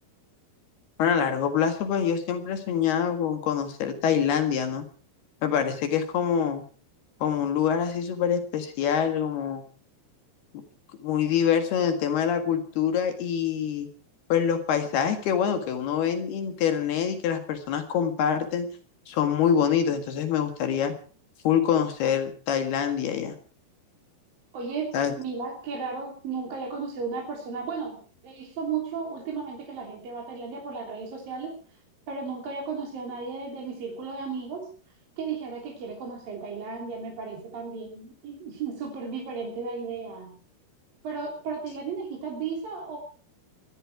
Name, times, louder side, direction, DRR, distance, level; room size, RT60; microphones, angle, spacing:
voice 1, 1.0-4.8 5.4-6.6 7.2-9.6 11.0-13.9 14.3-18.7 19.1-20.9 21.5-23.4 24.9-25.1, left 8 dB, 70° left, 7 dB, 3.8 m, -25 dB
voice 2, 24.5-24.9 25.2-31.5 32.1-34.7 35.2-40.3 41.0-43.0, right 5 dB, 60° right, -1 dB, 4.9 m, -34 dB
20.5 x 14.5 x 4.7 m, 0.41 s
omnidirectional pair, 4.7 m